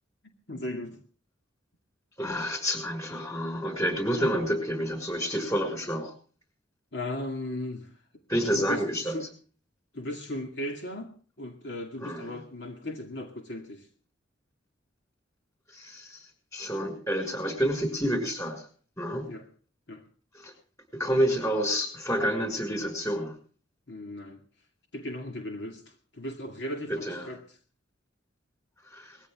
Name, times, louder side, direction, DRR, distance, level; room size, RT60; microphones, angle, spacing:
voice 1, 0.5-1.0 6.9-7.9 8.5-9.3 9.9-11.1 11.4-13.9 19.3-19.5 19.9-20.0 23.9-24.4 24.9-27.6, left 1 dB, 65° left, 3 dB, 2.3 m, -37 dB
voice 2, 2.2-6.1 8.3-9.1 12.0-12.4 15.7-16.2 16.5-18.7 19.0-19.3 20.3-20.5 20.9-23.4 26.9-27.2 28.9-29.2, equal, 15° left, 6 dB, 5.8 m, -29 dB
20.5 x 15.5 x 3.6 m, 0.41 s
head